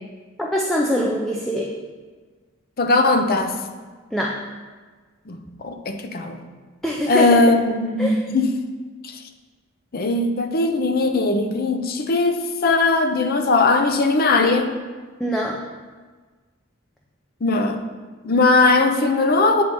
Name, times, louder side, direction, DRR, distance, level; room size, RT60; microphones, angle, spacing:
voice 1, 0.4-1.7 4.1-4.4 6.8-7.4 8.0-8.2 15.2-15.6, equal, ahead, -2 dB, 0.4 m, -23 dB
voice 2, 2.8-3.6 5.3-6.4 7.1-8.5 9.0-9.2 9.9-14.7 17.4-17.8 18.2-19.6, left 3 dB, 45° left, 6 dB, 0.6 m, -19 dB
8.4 x 3.3 x 4.2 m, 1.4 s
head